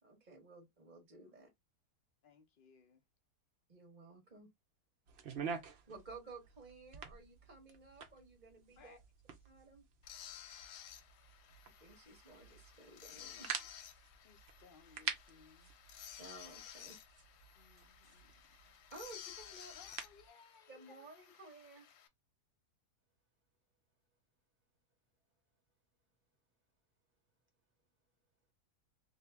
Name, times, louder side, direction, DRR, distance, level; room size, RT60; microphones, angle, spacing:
voice 1, 0.0-1.5 3.7-4.5 5.9-9.0 9.4-9.8 11.8-13.5 16.2-17.0 18.9-19.7 20.7-21.9, right 3 dB, 30° right, 1.0 m, -55 dB
voice 2, 2.2-3.0 8.8-9.0 9.4-9.5 14.2-15.7 17.5-18.3 18.7-18.8 19.7-21.0, left 5 dB, 55° left, 0.6 m, -63 dB
sound 1, 5.1-20.3, right 6 dB, 60° right, 0.7 m, -49 dB
sound 2, 10.0-22.1, left 10 dB, 75° left, 1.2 m, -55 dB
voice 3, 23.9-24.2 24.9-25.6 26.3-27.2 27.5-28.5, right 2 dB, 10° right, 0.9 m, -91 dB
2.8 x 2.7 x 3.3 m
omnidirectional pair, 1.8 m